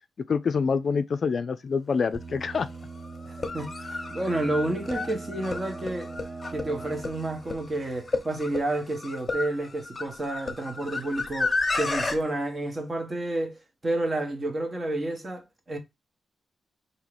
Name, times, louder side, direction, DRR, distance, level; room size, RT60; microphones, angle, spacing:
voice 1, 0.3-2.7, left 5 dB, 55° left, 0.3 m, -26 dB
sound 1, 2.1-2.2 3.3-12.2, left 3 dB, 30° left, 1.0 m, -32 dB
sound 2, 2.1-8.7, right 3 dB, 90° right, 1.4 m, -42 dB
voice 2, 3.2-6.1 6.5-15.8, right 1 dB, 30° right, 1.1 m, -30 dB
3.6 x 2.7 x 3.3 m
wide cardioid pair, 100°, 0 cm